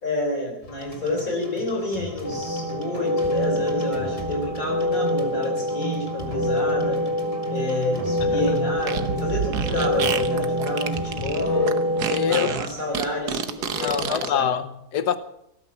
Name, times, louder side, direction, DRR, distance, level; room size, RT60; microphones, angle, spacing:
voice 1, 0.0-7.0 7.5-11.8 12.3-14.5, left 2 dB, 55° left, 4.1 m, -29 dB
sound 1, 0.6-11.7, left 2 dB, 20° left, 2.0 m, -40 dB
sound 2, 2.2-12.5, equal, 35° right, 3.5 m, -26 dB
Fart, 8.8-14.3, right 7 dB, 75° right, 1.6 m, -29 dB
voice 2, 12.1-12.5 13.8-15.2, left 8 dB, 85° left, 1.6 m, -25 dB
19.0 x 12.5 x 6.0 m
omnidirectional pair, 1.7 m